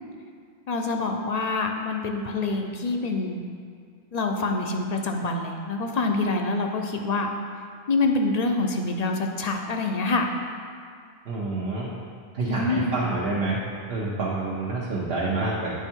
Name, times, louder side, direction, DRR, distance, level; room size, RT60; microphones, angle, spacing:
voice 1, 0.7-3.4 4.1-7.3 7.9-10.3 12.4-12.9, left 3 dB, 50° left, 3 dB, 0.5 m, -26 dB
voice 2, 11.3-11.9 12.3-13.6 13.9-15.7, right 3 dB, 70° right, -6 dB, 1.1 m, -27 dB
9.1 x 3.5 x 4.4 m, 2.2 s
omnidirectional pair, 1.1 m